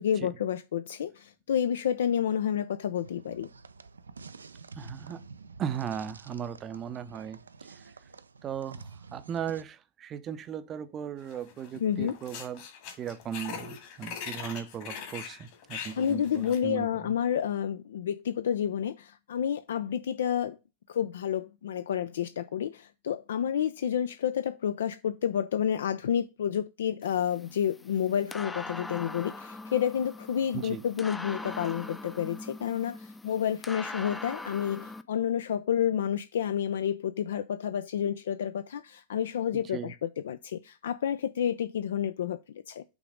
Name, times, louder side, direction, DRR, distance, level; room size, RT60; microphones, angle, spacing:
voice 1, 0.0-3.5 11.8-12.1 16.0-20.6 20.9-42.8, left 9 dB, 60° left, 0.4 m, -30 dB
sound 1, 2.9-9.6, right 4 dB, 75° right, 0.4 m, -48 dB
voice 2, 4.8-5.2 5.6-7.4 7.7-7.8 8.4-12.6 13.0-17.1 30.5-30.8 39.5-39.9, right 8 dB, 30° right, 0.6 m, -37 dB
sound 2, 11.3-11.8 12.0-16.7, left 7 dB, 45° left, 1.9 m, -41 dB
sound 3, 27.0-35.0, left 2 dB, 10° left, 0.5 m, -42 dB
6.0 x 3.9 x 4.9 m
figure-of-eight pair, 90°, 0 cm